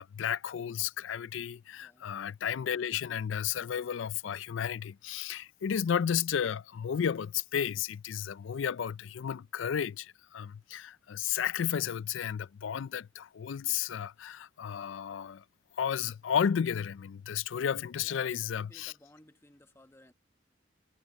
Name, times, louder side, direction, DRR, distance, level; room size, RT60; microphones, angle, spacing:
voice 1, 0.0-15.4 15.8-18.9, left 8 dB, 85° left, 0.4 m, -33 dB
voice 2, 1.7-2.1 18.0-20.1, left 1 dB, 15° left, 1.3 m, -59 dB
head